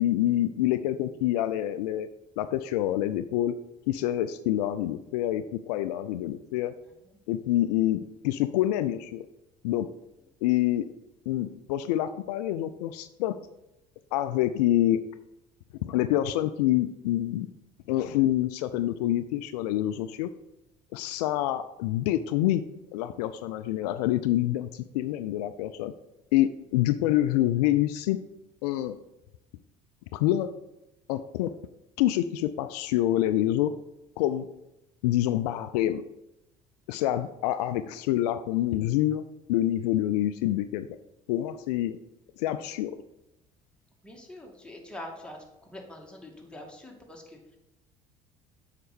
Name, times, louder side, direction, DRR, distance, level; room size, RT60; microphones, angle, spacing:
voice 1, 0.0-2.1 2.4-3.5 3.9-6.7 7.3-9.3 9.6-9.9 10.4-10.9 11.3-13.3 14.1-15.0 15.8-17.5 17.9-20.3 20.9-22.6 22.9-25.9 26.3-28.2 28.6-29.0 30.1-30.5 31.1-31.5 32.0-33.7 34.2-34.5 35.0-36.0 36.9-39.2 39.5-40.9 41.3-42.0 42.4-43.0, left 13 dB, 75° left, 12 dB, 0.4 m, -26 dB
voice 2, 44.0-47.4, left 1 dB, 5° left, -1 dB, 2.3 m, -44 dB
7.6 x 5.8 x 5.2 m, 0.91 s
hypercardioid pair, 55°, 21 cm